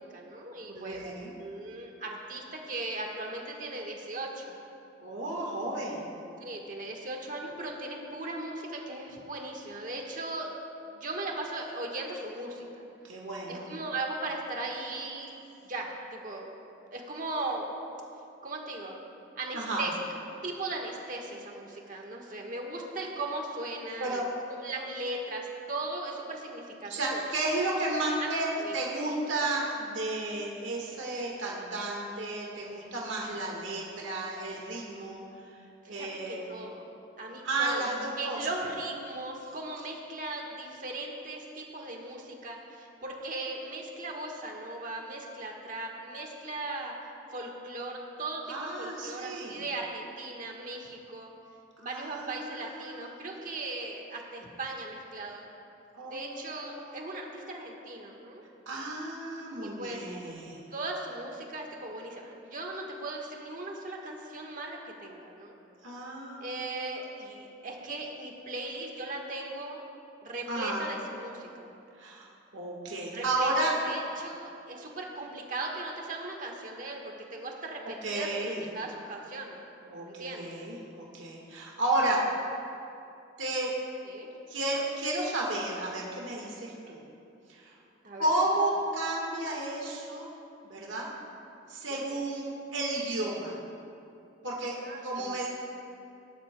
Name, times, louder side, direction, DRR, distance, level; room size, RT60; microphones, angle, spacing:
voice 1, 0.1-1.1 1.4-4.6 6.4-10.5 10.9-12.9 13.5-15.4 15.7-16.5 16.9-17.7 18.4-19.0 19.4-19.9 20.4-24.2 24.6-27.2 28.2-28.3 28.6-28.9 35.8-36.8 37.2-37.9 38.2-46.9 47.3-51.3 51.8-55.5 56.0-58.4 59.6-60.0 60.7-65.6 66.4-69.8 70.2-71.7 73.1-79.6 80.0-80.5 84.0-84.3 88.0-88.3 91.9-92.2 94.7-95.5, right 2 dB, 45° right, 0 dB, 1.4 m, -38 dB
voice 2, 0.7-1.3 5.0-6.0 13.0-13.7 19.5-19.9 24.0-24.3 26.9-35.2 35.9-36.5 37.4-38.4 48.5-49.6 51.8-53.1 55.9-56.9 58.7-60.6 65.8-66.5 70.5-70.8 72.0-72.3 72.5-73.7 78.0-78.7 79.8-82.2 83.4-83.7 84.5-87.0 87.5-87.7 88.2-90.3 90.6-91.1 91.7-93.6 94.4-94.8 95.0-95.5, right 2 dB, 85° right, -2 dB, 1.5 m, -32 dB
18.5 x 11.0 x 2.2 m, 2.7 s
head